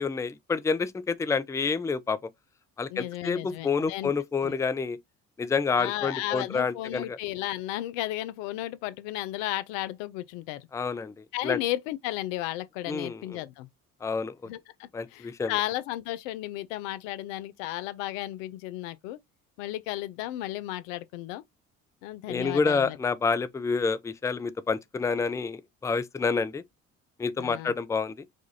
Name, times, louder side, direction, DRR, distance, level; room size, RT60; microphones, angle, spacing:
voice 1, 0.0-2.2 2.8-5.0 5.4-7.2 10.7-11.1 11.4-11.6 12.9-13.4 14.0-14.3 14.9-15.5 22.3-26.6 27.2-28.1, left 5 dB, 10° left, 0.4 m, -28 dB
voice 2, 2.9-4.1 4.4-4.6 5.8-10.7 11.3-13.7 14.5-19.2 19.6-21.4 22.0-23.0 27.4-27.7, left 15 dB, 80° left, 0.5 m, -34 dB
4.9 x 2.4 x 2.6 m
hypercardioid pair, 60°, 38 cm